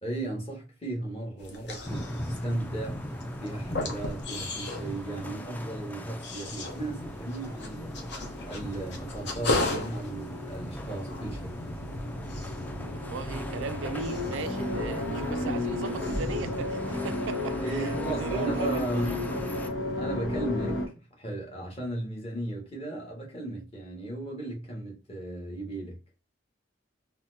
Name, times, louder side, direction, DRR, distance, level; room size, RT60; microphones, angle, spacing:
voice 1, 0.0-3.0 3.4-7.9 8.5-11.6 17.6-19.2 20.0-26.0, right 2 dB, 30° left, 1.3 m, -36 dB
sound 1, 1.4-15.7 16.0-16.6, left 2 dB, 60° left, 0.8 m, -37 dB
sound 2, 1.9-19.7, equal, 10° left, 0.3 m, -40 dB
sound 3, 6.7-20.9, left 2 dB, 90° left, 0.9 m, -34 dB
voice 2, 12.9-19.2, right 5 dB, 90° right, 0.4 m, -38 dB
4.1 x 2.1 x 2.6 m
head